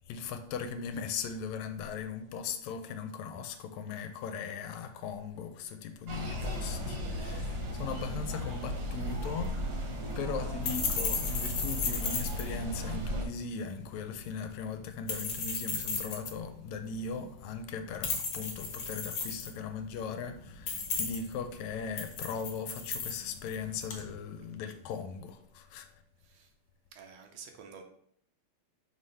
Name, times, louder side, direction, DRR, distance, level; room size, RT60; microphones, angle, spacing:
voice 1, 0.1-9.8 10.2-25.9, left 6 dB, 80° left, 1.8 m, -39 dB
sound 1, 6.1-13.2, equal, 55° right, 1.4 m, -35 dB
sound 2, 9.0-24.1, left 5 dB, 65° left, 1.5 m, -37 dB
voice 2, 26.9-27.8, right 6 dB, 75° right, 1.8 m, -49 dB
5.5 x 3.2 x 5.4 m
omnidirectional pair, 3.3 m